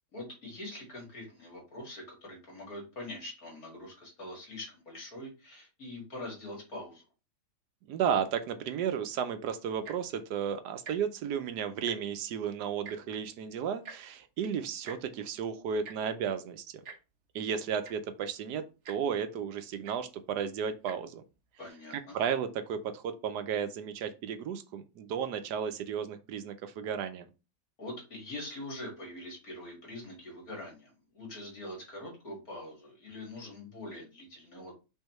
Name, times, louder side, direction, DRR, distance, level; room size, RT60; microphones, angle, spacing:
voice 1, 0.1-7.0 21.6-22.2 27.8-34.7, left 1 dB, 60° left, -1 dB, 2.4 m, -43 dB
voice 2, 7.8-16.8 17.3-21.2 21.9-27.2, right 7 dB, 85° right, 9 dB, 1.3 m, -33 dB
Tick-tock, 9.7-10.1 10.8-11.0 11.3-11.4 11.7-12.2 12.8-13.0 13.8-14.0 14.8-15.0 15.8-16.0 16.8-17.0 17.6-17.7 17.8-18.1 18.8-19.0 19.8-20.0 20.8-21.0 21.7-21.8, right 5 dB, 50° right, 0.9 m, -45 dB
5.6 x 3.2 x 3.0 m, 0.30 s
omnidirectional pair, 1.7 m